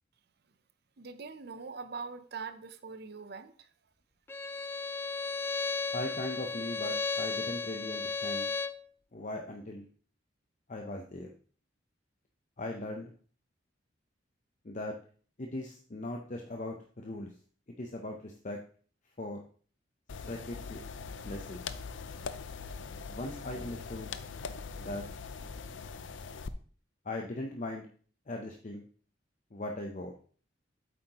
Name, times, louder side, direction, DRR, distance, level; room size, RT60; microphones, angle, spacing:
voice 1, 1.0-3.7, right 5 dB, 55° right, 0.7 m, -42 dB
Bowed string instrument, 4.3-8.8, left 4 dB, 10° left, 0.3 m, -34 dB
voice 2, 5.9-8.5 9.1-9.9 10.7-11.3 12.6-13.1 14.6-15.0 15.4-17.3 17.8-18.6 19.2-19.4 20.3-20.8 21.2-21.6 23.1-24.1 24.8-25.0 27.0-27.8 28.3-28.8 29.5-30.1, left 1 dB, 40° left, 0.7 m, -39 dB
sound 1, 20.1-26.5, left 5 dB, 80° left, 0.5 m, -42 dB
8.5 x 7.7 x 3.0 m
head